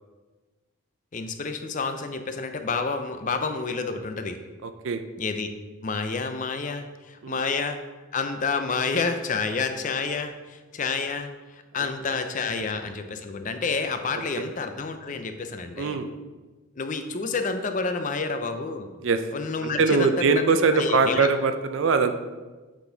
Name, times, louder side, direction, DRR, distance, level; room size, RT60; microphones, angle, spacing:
voice 1, 1.1-4.4 5.2-5.5 5.8-7.8 8.1-16.0 16.8-18.9 19.3-20.3 20.7-21.3, left 4 dB, 35° left, 8 dB, 0.5 m, -29 dB
voice 2, 4.6-5.0 7.2-7.4 11.8-11.9 12.5-12.8 15.8-16.1 19.0-19.2 19.6-22.2, right 4 dB, 65° right, 9 dB, 0.4 m, -22 dB
8.3 x 4.0 x 3.9 m, 1.3 s
head